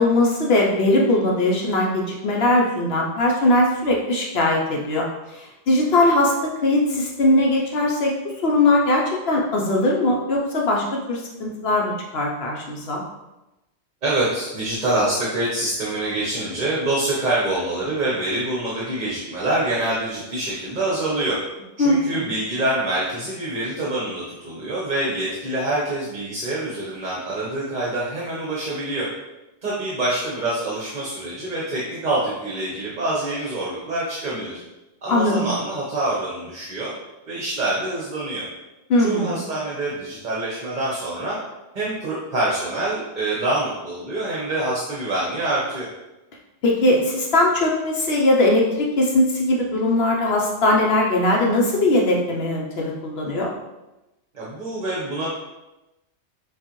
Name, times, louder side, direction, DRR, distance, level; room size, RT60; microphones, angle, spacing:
voice 1, 0.0-5.1 5.3-8.1 8.4-13.0 21.8-22.2 35.1-35.4 38.9-39.4 46.6-53.5, left 1 dB, 65° left, -1 dB, 0.9 m, -20 dB
voice 2, 14.0-21.4 21.8-29.1 29.6-34.6 35.0-36.9 37.3-38.5 39.0-41.4 41.7-45.9 54.3-55.3, right 2 dB, 45° right, -6 dB, 1.0 m, -25 dB
6.5 x 2.5 x 3.0 m, 0.98 s
omnidirectional pair, 1.2 m